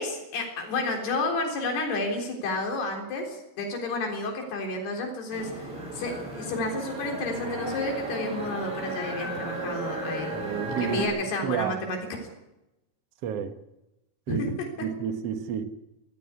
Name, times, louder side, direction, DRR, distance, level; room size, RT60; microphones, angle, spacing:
voice 1, 0.0-10.4 10.8-12.3 14.3-14.5, left 2 dB, 85° left, 2 dB, 5.8 m, -31 dB
sound 1, 5.3-11.1, right 2 dB, 35° right, 7.7 m, -35 dB
voice 2, 10.3-11.8 13.2-13.6 14.3-14.4 14.8-15.6, right 8 dB, 55° right, 9 dB, 1.8 m, -30 dB
19.5 x 14.5 x 9.7 m, 0.94 s
omnidirectional pair, 4.5 m